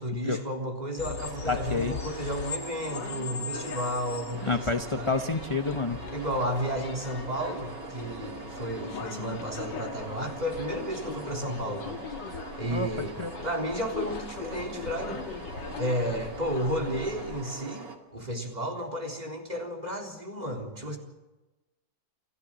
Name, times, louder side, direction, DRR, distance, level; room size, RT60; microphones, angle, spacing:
voice 1, 0.0-4.7 4.9-5.1 6.1-12.0 12.6-15.2 15.8-17.9 18.1-21.0, equal, 20° right, 4 dB, 3.9 m, -32 dB
sound 1, 1.0-17.4, left 6 dB, 75° left, 2.1 m, -40 dB
sound 2, 1.2-18.0, right 5 dB, 70° right, 3.3 m, -43 dB
voice 2, 1.5-1.9 4.5-6.0 12.7-12.9 13.2-13.3, left 3 dB, 25° left, 7 dB, 0.6 m, -28 dB
29.5 x 12.0 x 8.1 m, 1.0 s
omnidirectional pair, 1.9 m